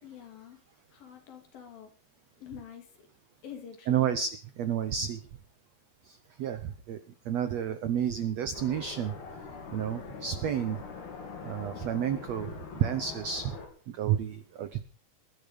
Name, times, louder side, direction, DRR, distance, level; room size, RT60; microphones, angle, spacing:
voice 1, 0.0-0.6 0.9-1.9 2.4-3.1 3.4-4.2, left 9 dB, 70° left, 5 dB, 4.7 m, -46 dB
voice 2, 3.9-4.3 4.6-5.2 6.0-7.0 7.2-9.1 9.7-10.8 11.4-13.6 13.9-14.8, right 9 dB, 75° right, 11 dB, 1.6 m, -30 dB
sound 1, 8.5-13.7, left 5 dB, 90° left, 5.6 m, -43 dB
21.0 x 11.0 x 5.2 m, 0.39 s
omnidirectional pair, 4.3 m